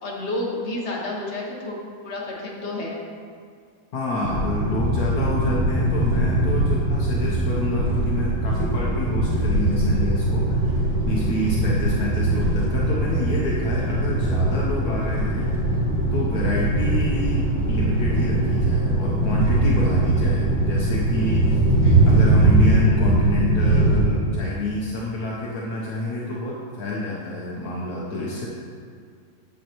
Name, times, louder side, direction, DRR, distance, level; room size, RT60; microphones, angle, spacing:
voice 1, 0.0-1.8 2.0-3.0 11.0-11.1 11.7-12.0 20.3-20.5 21.8-22.0, left 2 dB, 45° left, -3 dB, 1.5 m, -31 dB
voice 2, 3.9-21.6 22.0-28.5, left 1 dB, 70° left, -4 dB, 1.3 m, -28 dB
sound 1, 4.2-24.0, right 2 dB, 10° left, 1.1 m, -21 dB
10.0 x 6.4 x 3.0 m, 2.2 s
omnidirectional pair, 1.7 m